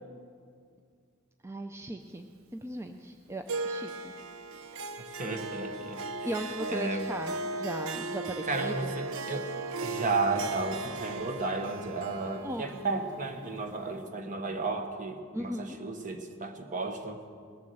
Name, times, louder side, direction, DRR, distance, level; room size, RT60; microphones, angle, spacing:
voice 1, 1.4-4.1 6.2-8.9 12.4-13.0 15.3-15.8, right 1 dB, 15° right, 5 dB, 0.5 m, -38 dB
Harp, 3.5-14.1, right 2 dB, 85° right, 0.6 m, -37 dB
voice 2, 5.0-6.0 6.7-7.1 8.5-9.6 9.8-17.2, right 3 dB, 40° right, 6 dB, 1.2 m, -33 dB
20.0 x 7.2 x 7.8 m, 2.2 s
head